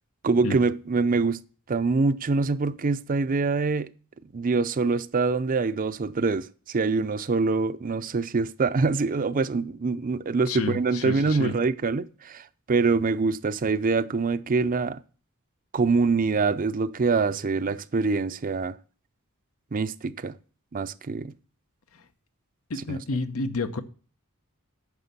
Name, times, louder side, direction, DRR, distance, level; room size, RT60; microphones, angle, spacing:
voice 1, 0.2-1.4 1.7-3.9 4.3-15.0 15.7-18.7 19.7-20.4 20.7-21.3 22.9-23.0, right 4 dB, 40° right, 0.5 m, -25 dB
voice 2, 10.5-11.5 22.7-23.8, left 3 dB, 75° left, 0.9 m, -30 dB
9.7 x 6.0 x 6.8 m
head